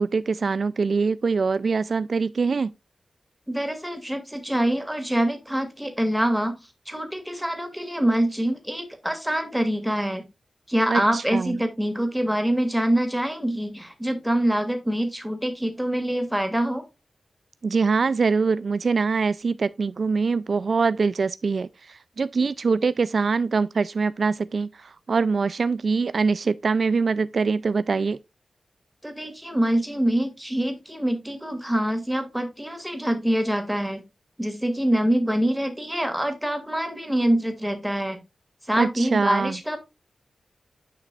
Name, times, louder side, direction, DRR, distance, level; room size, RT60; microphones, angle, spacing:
voice 1, 0.0-2.7 10.9-11.5 17.6-28.2 38.8-39.6, right 4 dB, 60° right, 0.3 m, -23 dB
voice 2, 3.5-6.6 6.9-10.2 10.7-16.8 29.0-34.0 34.4-38.2 38.7-39.8, right 1 dB, 5° right, 2.2 m, -25 dB
9.9 x 5.8 x 2.4 m
wide cardioid pair, 95°, 0 cm